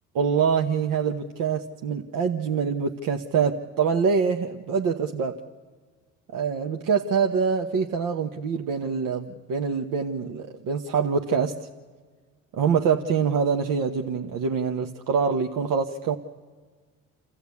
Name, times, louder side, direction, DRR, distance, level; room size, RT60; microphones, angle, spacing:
voice 1, 0.1-5.4 6.3-11.7 12.5-16.2, right 6 dB, 60° right, 4 dB, 1.1 m, -25 dB
28.0 x 14.0 x 8.4 m, 1.5 s
hypercardioid pair, 60°, 37 cm